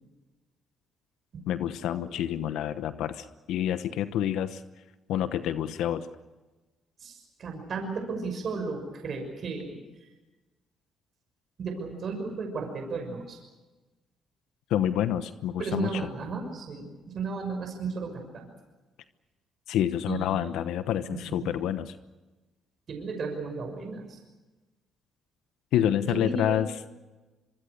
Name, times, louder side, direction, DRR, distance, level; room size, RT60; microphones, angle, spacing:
voice 1, 1.5-4.6 5.1-6.1 14.7-15.9 19.7-21.9 25.7-26.9, left 10 dB, 90° left, 11 dB, 1.1 m, -28 dB
voice 2, 7.0-10.1 11.6-13.4 15.6-18.5 20.1-20.7 21.1-21.5 22.9-24.2 26.0-26.6, right 4 dB, 55° right, 4 dB, 6.2 m, -34 dB
25.5 x 23.5 x 6.7 m, 1.2 s
cardioid pair, 90°, 0 cm